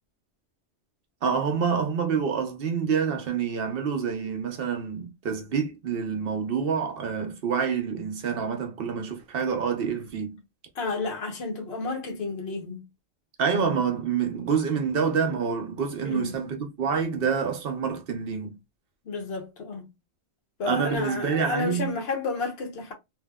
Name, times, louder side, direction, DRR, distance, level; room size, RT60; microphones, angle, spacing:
voice 1, 1.2-10.4 13.4-18.6 20.7-21.9, right 6 dB, 55° right, 1.0 m, -27 dB
voice 2, 10.7-12.9 16.0-16.3 19.0-19.8 20.6-22.9, left 3 dB, 60° left, 1.2 m, -31 dB
3.0 x 2.8 x 2.2 m
omnidirectional pair, 1.2 m